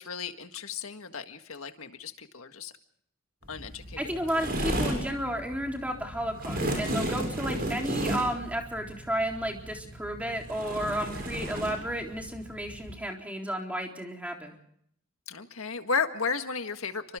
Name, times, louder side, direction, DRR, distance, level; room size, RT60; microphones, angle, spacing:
voice 1, 0.0-2.7 3.5-4.0 15.3-17.2, left 5 dB, 85° left, 8 dB, 1.8 m, -34 dB
sound 1, 3.4-12.9, right 1 dB, 50° right, 7.2 m, -34 dB
voice 2, 4.0-14.5, right 1 dB, 5° right, 1 dB, 3.8 m, -32 dB
29.5 x 25.0 x 3.8 m, 0.68 s
head